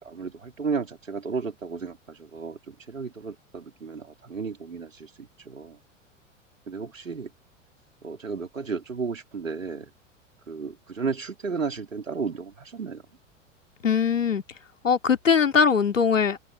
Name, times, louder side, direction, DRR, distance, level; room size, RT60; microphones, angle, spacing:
voice 1, 0.0-5.8 6.7-7.3 8.0-9.9 10.5-13.0, right 5 dB, 80° right, 4.2 m, -33 dB
voice 2, 13.8-14.4 14.8-16.4, left 6 dB, 80° left, 2.8 m, -21 dB
open air
figure-of-eight pair, 90°, 38 cm